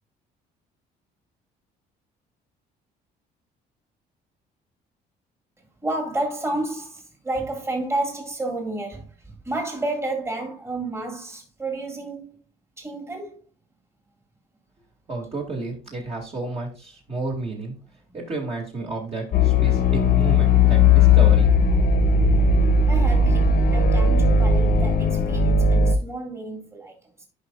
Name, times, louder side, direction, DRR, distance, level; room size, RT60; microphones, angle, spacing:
voice 1, 5.8-12.4 12.8-13.4 18.1-18.2 22.9-27.3, right 2 dB, 15° right, 2.1 m, -31 dB
voice 2, 15.1-17.7 18.1-21.5, right 2 dB, 35° right, 2.4 m, -31 dB
sound 1, 19.3-26.0, left 3 dB, 60° left, 1.1 m, -17 dB
11.0 x 5.4 x 2.4 m
cardioid pair, 110°, 17 cm